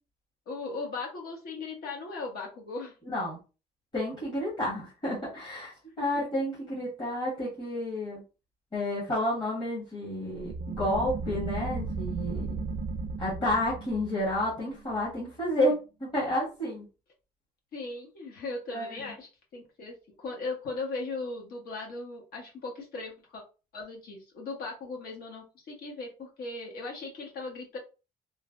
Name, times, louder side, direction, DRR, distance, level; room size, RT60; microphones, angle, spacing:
voice 1, 0.5-2.9 6.0-6.1 17.7-23.4 23.7-27.8, left 3 dB, 65° left, 0 dB, 1.2 m, -38 dB
voice 2, 3.0-3.4 3.9-8.2 8.7-12.7 13.2-16.9 18.7-19.0, left 1 dB, 25° left, -7 dB, 1.3 m, -30 dB
sound 1, 10.4-15.7, right 3 dB, 40° right, 0.4 m, -36 dB
3.1 x 2.1 x 2.5 m, 0.32 s
cardioid pair, 110°, 17 cm